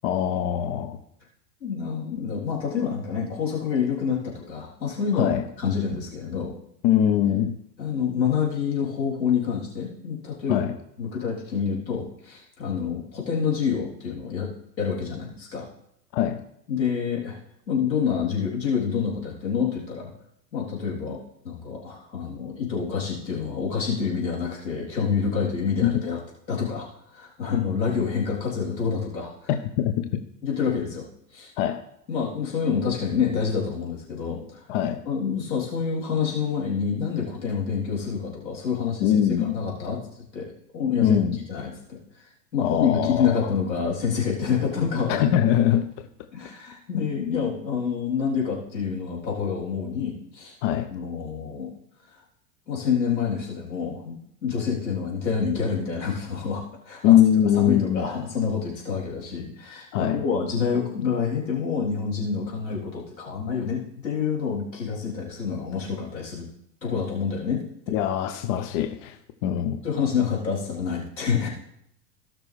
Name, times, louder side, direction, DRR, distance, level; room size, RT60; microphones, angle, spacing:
voice 1, 0.0-1.0 5.1-5.4 6.8-7.6 10.5-10.7 16.1-16.4 25.8-25.9 29.8-30.1 31.6-31.8 34.7-35.0 39.0-39.5 41.0-41.4 42.6-43.5 45.1-46.1 46.9-47.0 50.6-50.9 57.0-58.0 59.9-60.2 67.9-69.8, left 10 dB, 45° left, 9 dB, 0.9 m, -22 dB
voice 2, 1.6-6.5 7.8-10.6 11.0-14.5 14.8-15.7 16.7-17.4 17.7-20.1 20.5-26.2 26.5-29.5 30.4-31.1 31.3-31.5 32.1-34.6 35.1-40.0 40.3-41.2 41.5-42.0 42.5-45.3 46.3-50.6 50.9-51.7 52.7-57.2 57.5-66.5 66.8-68.0 69.4-69.5 69.8-71.5, left 6 dB, 85° left, -4 dB, 3.7 m, -27 dB
17.5 x 6.0 x 3.4 m, 0.74 s
hypercardioid pair, 95°, 50 cm